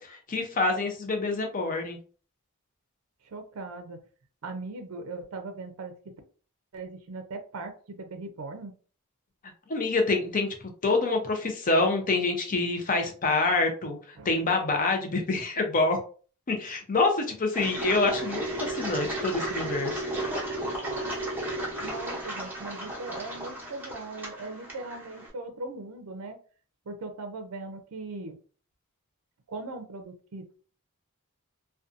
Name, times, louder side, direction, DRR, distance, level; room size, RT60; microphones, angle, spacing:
voice 1, 0.0-2.0 9.7-10.5 10.8-16.0 16.5-20.0, left 3 dB, 35° left, 4 dB, 0.6 m, -26 dB
voice 2, 3.2-4.0 4.4-6.1 6.7-8.7 14.2-14.3 21.8-26.4 26.9-28.4 29.5-30.5, right 3 dB, 70° right, 6 dB, 0.4 m, -39 dB
Engine, 17.5-25.3, right 1 dB, 10° right, 0.7 m, -34 dB
2.5 x 2.2 x 2.5 m, 0.40 s
head